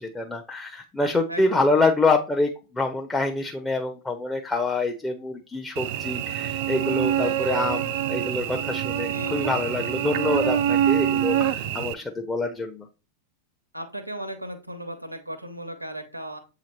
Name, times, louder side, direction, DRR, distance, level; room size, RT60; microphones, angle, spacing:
voice 1, 0.0-12.9, left 3 dB, 10° left, 2 dB, 0.6 m, -26 dB
voice 2, 1.3-1.6 9.1-9.7 13.7-16.4, right 1 dB, 85° right, 8 dB, 0.8 m, -36 dB
Cricket / Buzz, 5.8-11.9, right 10 dB, 50° right, 0.4 m, -25 dB
7.5 x 2.9 x 4.3 m, 0.32 s
figure-of-eight pair, 90°, 0 cm